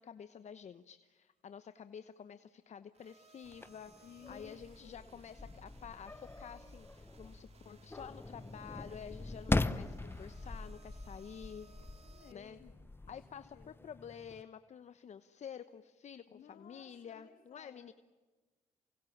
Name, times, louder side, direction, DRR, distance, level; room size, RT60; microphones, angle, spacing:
voice 1, 0.0-3.9 4.3-11.7 12.3-12.6 13.1-17.9, left 7 dB, 55° left, 11 dB, 1.0 m, -50 dB
sound 1, 2.9-12.3, right 4 dB, 45° right, 2.8 m, -63 dB
sound 2, 3.5-14.4, left 2 dB, 15° left, 1.0 m, -41 dB
voice 2, 4.0-5.2 11.6-13.2 13.5-13.9 16.3-17.9, left 8 dB, 75° left, 4 dB, 3.1 m, -59 dB
28.5 x 24.0 x 7.3 m, 1.3 s
supercardioid pair, 65°, 15 cm